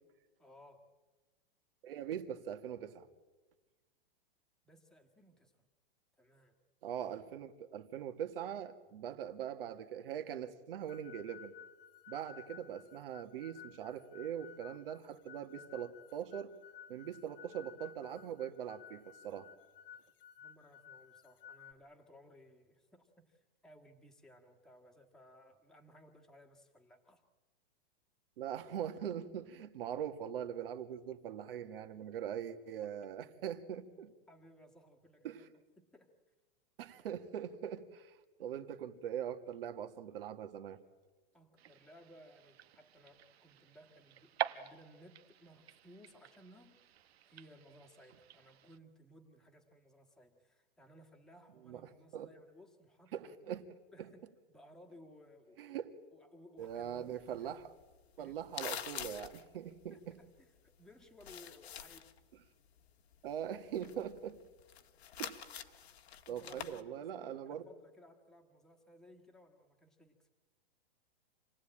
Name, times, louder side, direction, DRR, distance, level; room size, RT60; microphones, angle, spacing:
voice 1, 0.4-0.9 4.6-5.7 6.2-6.5 9.0-9.2 20.4-27.2 34.3-35.4 35.8-36.1 41.3-46.8 47.2-53.3 53.9-55.8 56.1-57.5 58.2-58.4 59.9-62.1 66.3-70.3, equal, ahead, 1 dB, 1.6 m, -60 dB
voice 2, 1.8-3.1 6.8-11.5 12.1-16.5 16.9-19.5 28.4-34.1 35.2-35.4 36.8-40.8 51.6-52.3 53.1-53.6 54.0-54.1 55.6-55.9 56.6-57.6 58.2-60.2 63.2-64.4 65.2-65.8 66.3-67.6, right 9 dB, 65° right, 8 dB, 1.9 m, -42 dB
sound 1, 10.9-21.7, left 9 dB, 60° left, 1.3 m, -56 dB
sound 2, 41.6-48.8, right 11 dB, 80° right, 1.4 m, -46 dB
sound 3, 56.6-60.8 61.1-62.2 62.4-66.8, left 9 dB, 85° left, 1.7 m, -47 dB
28.0 x 18.5 x 8.8 m, 1.2 s
supercardioid pair, 165°, 31 cm